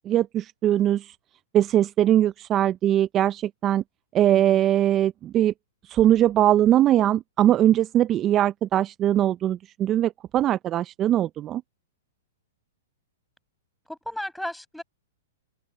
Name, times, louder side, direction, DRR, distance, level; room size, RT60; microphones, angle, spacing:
voice 1, 0.1-1.1 1.5-3.8 4.1-5.5 5.9-11.6, right 12 dB, 30° right, 0.5 m, -21 dB
voice 2, 4.3-4.7 13.9-14.8, left 1 dB, ahead, 6.3 m, -35 dB
open air
hypercardioid pair, 125°, 0 cm